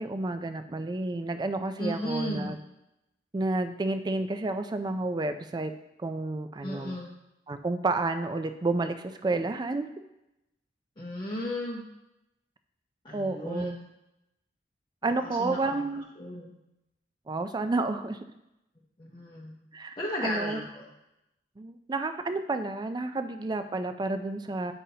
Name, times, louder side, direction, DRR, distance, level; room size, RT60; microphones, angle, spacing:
voice 1, 0.0-2.6 3.3-5.7 6.0-7.0 7.5-9.9 13.1-13.8 15.0-16.0 17.3-18.2 19.7-20.0 20.2-20.6 21.6-24.7, right 2 dB, 25° right, 9 dB, 0.4 m, -30 dB
voice 2, 1.8-2.6 6.6-7.1 11.0-11.8 13.0-13.9 15.0-15.8 16.2-16.6 19.0-19.6 20.0-20.9, left 1 dB, 30° left, -4 dB, 0.8 m, -35 dB
8.7 x 5.4 x 2.8 m, 0.89 s
head